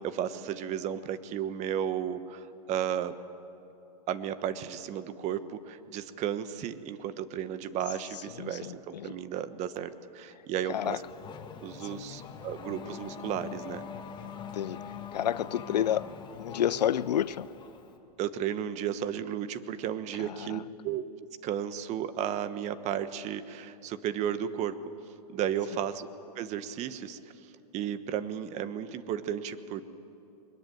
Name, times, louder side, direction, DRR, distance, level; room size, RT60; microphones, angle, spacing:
voice 1, 0.0-3.2 4.1-11.0 11.6-13.8 18.2-21.0 21.4-24.8 25.3-26.1 26.3-27.2 27.7-29.8, right 9 dB, 35° right, 12 dB, 1.2 m, -34 dB
voice 2, 8.4-9.2 10.7-11.0 11.9-12.0 14.5-14.8 15.1-16.1 16.4-17.5 20.3-20.6, left 10 dB, 85° left, 19 dB, 0.6 m, -30 dB
Race car auto racing / Accelerating revving vroom, 10.7-18.0, left 6 dB, 20° left, 2.0 m, -43 dB
22.0 x 21.0 x 9.1 m, 2.8 s
hypercardioid pair, 120°, 21 cm